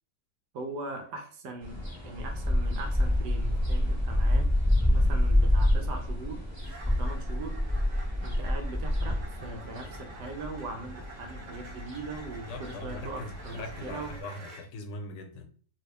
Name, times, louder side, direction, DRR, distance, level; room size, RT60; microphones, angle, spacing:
voice 1, 0.5-4.5 4.9-6.4 6.9-7.6 8.2-14.1, right 3 dB, 75° right, 1.3 m, -40 dB
sound 1, 0.9-1.1 1.5-1.8 2.2-2.5 2.9-3.1 3.5-3.7 4.4-4.5 4.9-5.1 6.6-14.7, right 2 dB, 60° right, 1.0 m, -49 dB
sound 2, 1.6-14.2, left 1 dB, 10° right, 1.2 m, -28 dB
voice 2, 12.5-15.5, left 2 dB, 80° left, 1.2 m, -41 dB
2.9 x 2.9 x 3.2 m
omnidirectional pair, 1.8 m